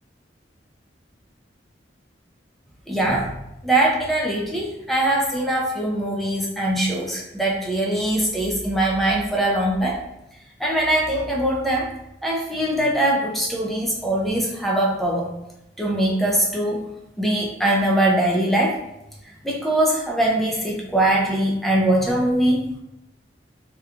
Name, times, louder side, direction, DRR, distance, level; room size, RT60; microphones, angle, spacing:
voice 1, 2.9-3.3 3.6-10.0 10.6-11.9 12.2-15.3 15.8-16.9 17.2-18.8 19.4-22.6, right 1 dB, ahead, -3 dB, 0.4 m, -22 dB
2.9 x 2.2 x 2.4 m, 0.87 s
head